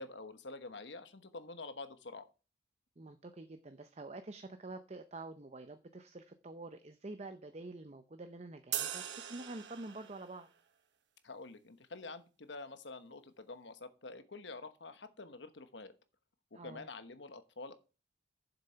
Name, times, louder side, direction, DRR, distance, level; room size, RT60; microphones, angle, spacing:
voice 1, 0.0-2.3 11.2-15.9 16.5-17.7, left 3 dB, 75° left, 10 dB, 1.1 m, -47 dB
voice 2, 3.0-10.5 16.5-16.9, right 2 dB, 35° right, 9 dB, 0.6 m, -47 dB
sound 1, 8.7-10.3, right 10 dB, 75° right, 1.2 m, -40 dB
7.5 x 6.8 x 5.7 m, 0.33 s
head